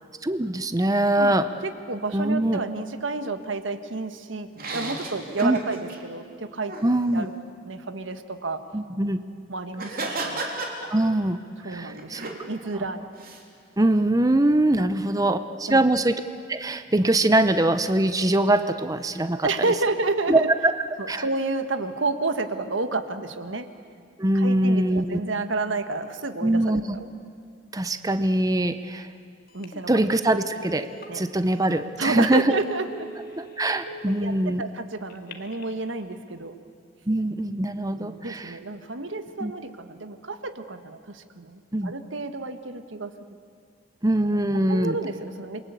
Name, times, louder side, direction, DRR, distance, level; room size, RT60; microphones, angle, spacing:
voice 1, 0.2-1.5 2.1-2.6 5.4-5.6 6.8-7.3 8.7-9.2 10.9-11.4 11.7-12.2 13.8-16.2 16.5-19.5 20.3-20.7 21.1-21.2 24.2-25.2 26.4-26.8 27.7-29.1 29.9-30.9 31.1-32.4 33.4-34.6 37.1-38.5 39.4-39.5 41.7-41.9 44.0-45.0, right 1 dB, 20° right, 10 dB, 0.7 m, -22 dB
voice 2, 1.2-6.8 7.1-7.3 7.6-8.6 9.5-10.5 11.6-13.1 14.7-14.9 15.7-15.8 19.4-20.5 21.0-23.7 24.3-27.1 29.5-29.9 31.1-31.2 32.0-33.1 34.0-36.6 37.9-43.1 44.5-45.6, right 3 dB, 90° right, 9 dB, 1.5 m, -30 dB
sound 1, 4.5-6.0 6.7-6.9 9.7-11.3 11.7-12.4 13.2-13.4, right 2 dB, 50° right, 3.3 m, -33 dB
Telephone, 29.5-29.7 30.1-31.1 31.7-31.8 32.2-32.3 32.8-33.9 35.1-35.7, equal, 50° left, 2.0 m, -42 dB
27.5 x 22.5 x 8.3 m, 2.2 s
head